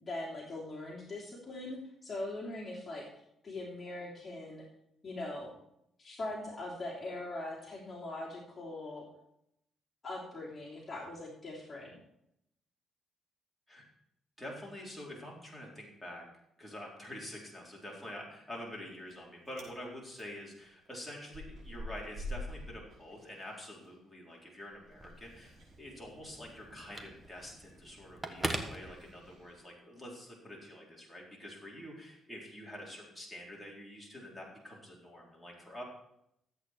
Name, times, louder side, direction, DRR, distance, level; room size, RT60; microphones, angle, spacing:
voice 1, 0.0-3.0 3.4-4.6 5.0-5.5 6.0-9.1 10.0-11.9, left 2 dB, 30° left, -4 dB, 3.2 m, -41 dB
voice 2, 14.4-16.2 16.6-35.8, left 1 dB, 5° left, -4 dB, 4.1 m, -47 dB
Chewing mastication, 18.7-19.2 19.4-19.7 20.1-23.9 24.2-29.6, left 1 dB, 50° right, 5.4 m, -47 dB
Telephone, 24.9-29.6, right 1 dB, 15° right, 1.4 m, -42 dB
13.5 x 8.4 x 4.7 m, 0.78 s
cardioid pair, 90°, 0 cm